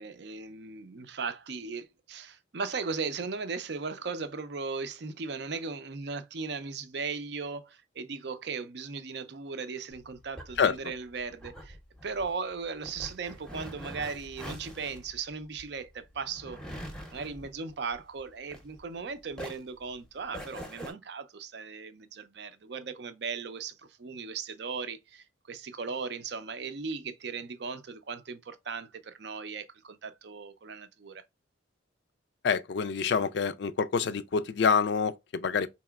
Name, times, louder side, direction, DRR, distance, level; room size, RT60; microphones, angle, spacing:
voice 1, 0.0-11.8 12.0-31.2, right 5 dB, 60° right, 0.5 m, -37 dB
sound 1, 9.9-19.0 19.3-20.9, equal, 5° left, 0.7 m, -44 dB
voice 2, 32.4-35.7, left 6 dB, 60° left, 0.4 m, -27 dB
4.1 x 2.9 x 2.3 m
head